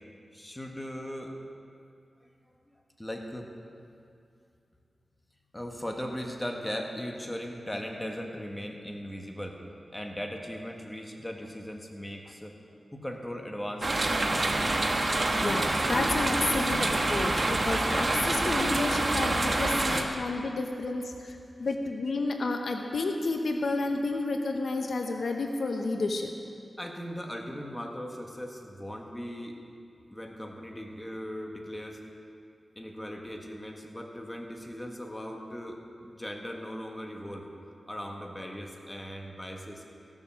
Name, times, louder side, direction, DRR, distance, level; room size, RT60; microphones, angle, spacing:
voice 1, 0.3-1.3 3.0-3.5 5.5-9.6 9.9-12.6 12.9-14.7 26.8-29.6 30.1-32.0 32.7-37.5 37.9-39.8, equal, 15° left, 1 dB, 1.6 m, -38 dB
sound 1, 13.8-20.0, right 2 dB, 45° right, 1.2 m, -27 dB
voice 2, 15.0-26.3, left 3 dB, 75° left, 3 dB, 0.9 m, -31 dB
16.0 x 7.3 x 6.2 m, 2.5 s
cardioid pair, 60°, 0 cm